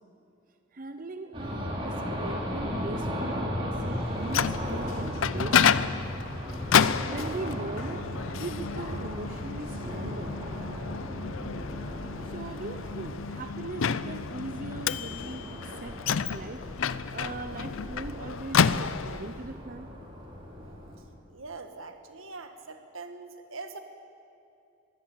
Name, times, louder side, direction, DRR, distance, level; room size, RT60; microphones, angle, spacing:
voice 1, 0.7-6.0 6.8-8.0 8.4-10.3 12.2-19.9, right 2 dB, 45° right, 8 dB, 0.7 m, -40 dB
sound 1, 1.3-21.0, equal, 25° right, 3.3 m, -36 dB
Microwave oven, 4.0-19.4, left 7 dB, 80° left, 0.5 m, -30 dB
voice 2, 21.3-23.8, right 3 dB, 85° right, 7 dB, 1.7 m, -43 dB
22.0 x 16.5 x 7.3 m, 2.6 s
head